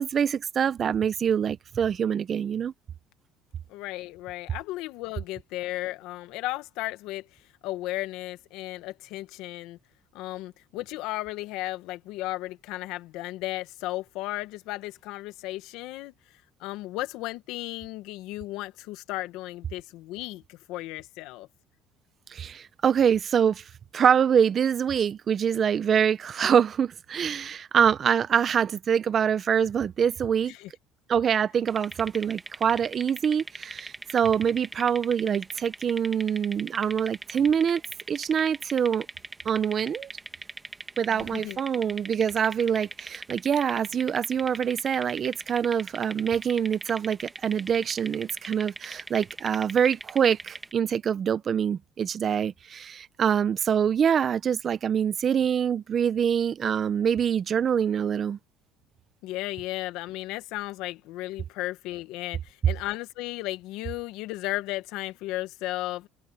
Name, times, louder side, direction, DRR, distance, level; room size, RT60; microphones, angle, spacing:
voice 1, 0.0-2.7 22.3-23.6 23.9-30.5 31.1-37.8 38.1-39.1 39.4-40.1 41.0-58.4, right 8 dB, 40° right, 1.0 m, -25 dB
voice 2, 3.7-9.8 10.1-21.5 30.5-30.7 41.1-41.9 59.2-66.1, left 17 dB, 75° left, 1.6 m, -35 dB
sound 1, 31.7-50.7, right 2 dB, 15° right, 2.3 m, -40 dB
supercardioid pair, 100°, 0 cm